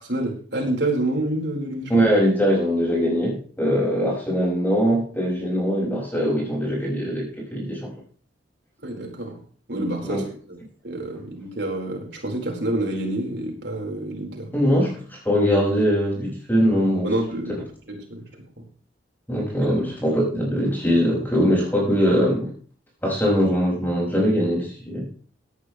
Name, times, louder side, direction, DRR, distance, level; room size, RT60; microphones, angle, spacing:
voice 1, 0.0-1.9 8.8-9.4 9.7-10.6 10.8-14.5 17.0-18.2 19.6-19.7, right 1 dB, 70° right, 0 dB, 4.5 m, -28 dB
voice 2, 1.9-7.9 10.0-10.2 14.5-17.1 19.3-22.5 23.0-25.1, equal, 10° left, -4 dB, 5.9 m, -22 dB
17.5 x 10.5 x 3.2 m, 0.42 s
head